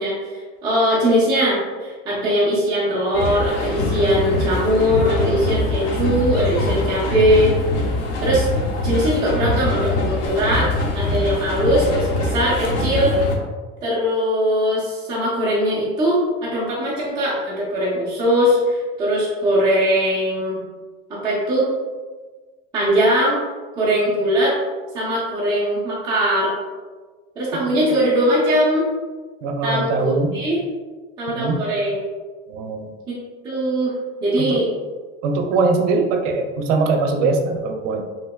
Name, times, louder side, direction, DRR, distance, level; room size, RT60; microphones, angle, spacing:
voice 1, 0.0-7.5 8.2-8.5 8.8-10.7 10.9-13.1 13.8-20.6 21.1-21.7 22.7-23.4 23.7-24.5 24.9-26.5 27.4-28.9 29.6-30.6 31.2-32.1 33.1-33.2 33.4-33.9 34.2-34.7, equal, 10° right, -8 dB, 0.4 m, -20 dB
sound 1, 3.1-13.4, left 2 dB, 70° left, 0.8 m, -23 dB
voice 2, 29.4-30.4 31.3-31.6 32.5-32.9 34.4-34.6 35.2-38.0, right 3 dB, 75° right, 4 dB, 0.6 m, -21 dB
3.3 x 2.9 x 2.2 m, 1.4 s
supercardioid pair, 150°, 37 cm